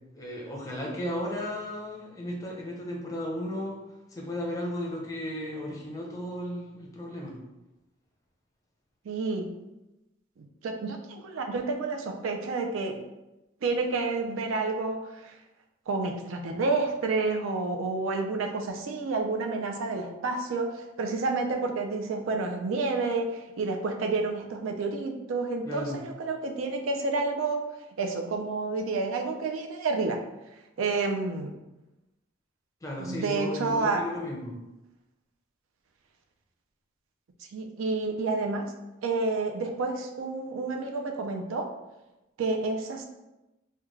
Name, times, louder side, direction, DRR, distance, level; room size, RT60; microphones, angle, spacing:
voice 1, 0.1-3.8 4.1-7.4 25.6-26.0 32.8-34.5, left 1 dB, 15° left, -2 dB, 0.6 m, -35 dB
voice 2, 9.1-9.5 10.4-13.0 13.6-15.3 15.9-27.6 28.0-30.2 30.8-31.5 33.0-34.0 37.5-38.7 39.0-41.7 42.4-43.1, right 3 dB, 90° right, 3 dB, 0.4 m, -29 dB
3.5 x 2.2 x 3.1 m, 0.99 s
head